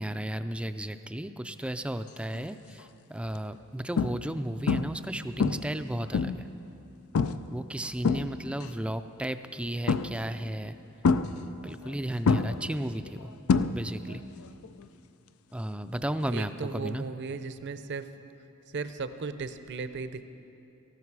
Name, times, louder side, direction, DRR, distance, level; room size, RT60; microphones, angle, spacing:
voice 1, 0.0-6.5 7.5-10.8 11.6-13.3 13.7-14.2 15.5-17.1, right 1 dB, 5° right, 10 dB, 0.4 m, -34 dB
sound 1, 2.3-2.6 3.2-3.4 4.0-4.4 4.7-5.1 5.4-6.5 7.1-7.5 7.8-8.7 9.9-10.4 11.0-11.9 12.2-14.1 14.4-14.8 16.9-17.0, left 5 dB, 85° left, 0.5 m, -27 dB
voice 2, 16.3-18.1 18.7-20.2, right 4 dB, 55° right, 11 dB, 0.6 m, -36 dB
18.0 x 14.5 x 4.8 m, 2.8 s
head